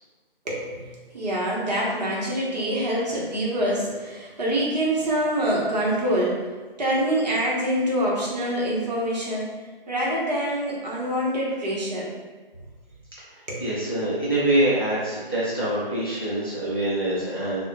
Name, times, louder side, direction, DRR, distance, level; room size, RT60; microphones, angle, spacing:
voice 1, 0.4-6.4 6.8-9.5 9.9-12.1 13.5-13.6, right 1 dB, 45° right, -4 dB, 0.8 m, -25 dB
voice 2, 13.3-17.6, right 1 dB, 25° left, -10 dB, 0.4 m, -25 dB
3.2 x 2.1 x 2.6 m, 1.3 s
figure-of-eight pair, 155°, 29 cm